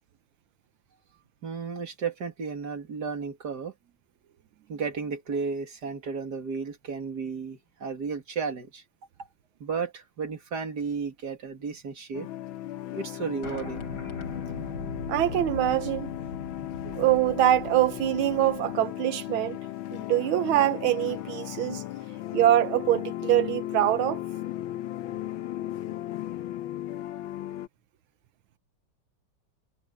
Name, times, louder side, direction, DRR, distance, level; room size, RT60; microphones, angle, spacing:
voice 1, 1.4-3.7 4.7-8.8 9.6-12.3 12.9-13.8, right 5 dB, 55° right, 2.9 m, -33 dB
sound 1, 12.1-27.7, left 14 dB, 85° left, 1.6 m, -36 dB
sound 2, 13.4-18.7, left 3 dB, 60° left, 4.6 m, -40 dB
voice 2, 15.1-16.1 16.8-19.6 19.9-21.8 22.3-24.2, right 13 dB, 85° right, 1.6 m, -24 dB
omnidirectional pair, 2.2 m